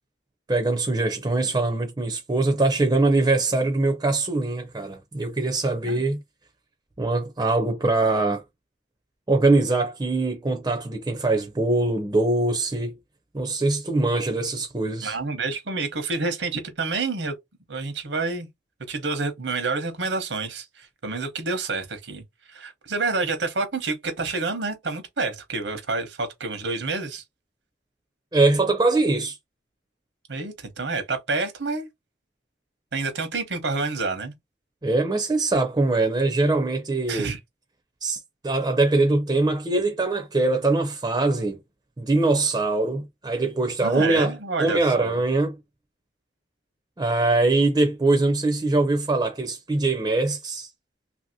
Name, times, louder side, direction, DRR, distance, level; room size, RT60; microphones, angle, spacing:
voice 1, 0.5-6.2 7.0-8.4 9.3-13.0 13.3-15.2 28.3-29.4 34.8-37.3 38.0-41.6 42.0-45.6 47.0-50.7, right 2 dB, 20° right, 0.5 m, -22 dB
voice 2, 15.0-17.3 17.7-18.5 18.9-22.2 22.5-27.2 30.3-31.9 32.9-34.3 37.1-37.4 43.8-45.2, right 3 dB, 85° right, 0.9 m, -28 dB
2.8 x 2.7 x 2.7 m
head